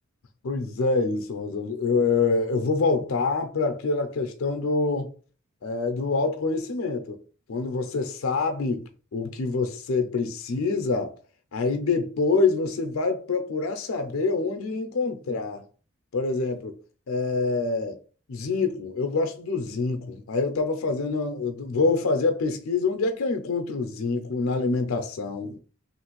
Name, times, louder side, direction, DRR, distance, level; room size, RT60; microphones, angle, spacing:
voice 1, 0.4-5.1 5.6-7.2 7.5-11.2 11.5-15.6 16.1-16.8 17.1-18.0 18.3-25.6, left 3 dB, 85° left, 0.5 m, -26 dB
3.1 x 2.4 x 3.0 m
head